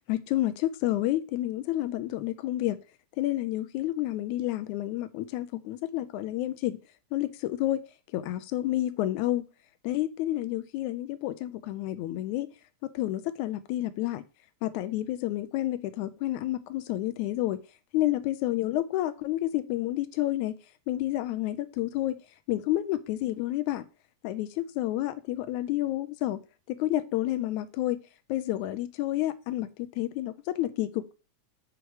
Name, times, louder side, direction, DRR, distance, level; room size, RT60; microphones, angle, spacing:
voice 1, 0.1-2.8 3.2-6.8 7.1-7.8 8.1-9.5 9.8-12.5 12.8-14.2 14.6-17.6 17.9-20.5 20.9-22.2 22.5-23.9 24.2-26.4 26.7-28.0 28.3-31.1, left 14 dB, 80° left, 2.0 m, -30 dB
6.3 x 4.6 x 4.8 m
omnidirectional pair, 3.5 m